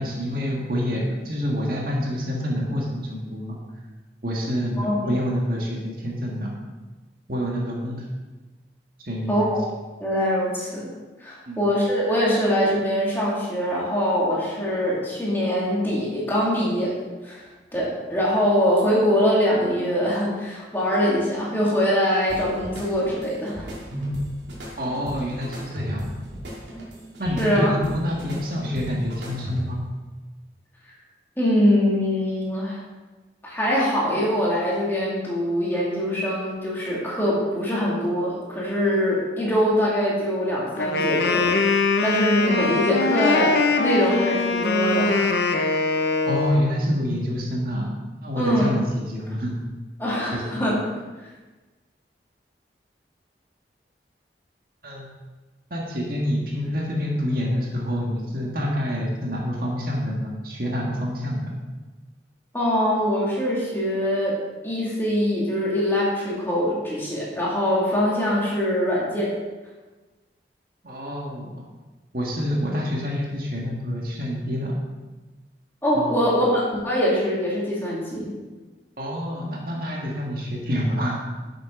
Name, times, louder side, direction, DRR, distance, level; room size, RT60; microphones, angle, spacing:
voice 1, 0.0-3.6 4.2-6.5 7.3-8.1 9.1-9.6 11.5-11.7 24.8-26.2 27.2-29.8 46.3-47.9 48.2-49.6 50.3-50.8 54.8-55.1 55.7-61.5 70.8-71.6 72.1-74.8 75.9-76.2 79.0-81.2, equal, 55° right, -2 dB, 1.8 m, -27 dB
voice 2, 4.8-5.1 9.3-9.6 10.0-10.9 11.2-16.9 17.2-17.4 17.7-23.7 27.4-27.8 31.4-32.8 33.4-45.8 48.4-48.7 50.0-50.8 62.5-64.4 64.6-69.3 75.8-78.3, equal, 10° left, -6 dB, 2.5 m, -23 dB
sound 1, 22.3-29.9, equal, 85° right, 2.5 m, -34 dB
Wind instrument woodwind instrument, 40.8-46.6, left 3 dB, 70° left, 0.8 m, -22 dB
10.5 x 7.7 x 3.9 m, 1.2 s
head